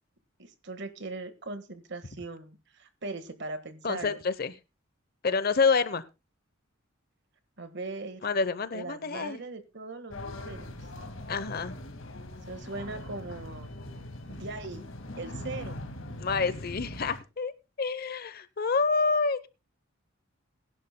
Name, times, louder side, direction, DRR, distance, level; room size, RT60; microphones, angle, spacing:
voice 1, 0.4-4.2 7.6-8.3 8.7-10.9 12.5-13.7 14.3-14.8 15.2-15.8, right 3 dB, 55° right, 1.5 m, -40 dB
voice 2, 3.8-4.5 5.2-6.0 8.2-9.4 11.3-11.8 16.2-17.5 17.8-19.5, left 4 dB, 45° left, 0.8 m, -28 dB
sound 1, 10.1-17.2, left 1 dB, 65° left, 2.0 m, -41 dB
21.5 x 11.0 x 2.2 m
head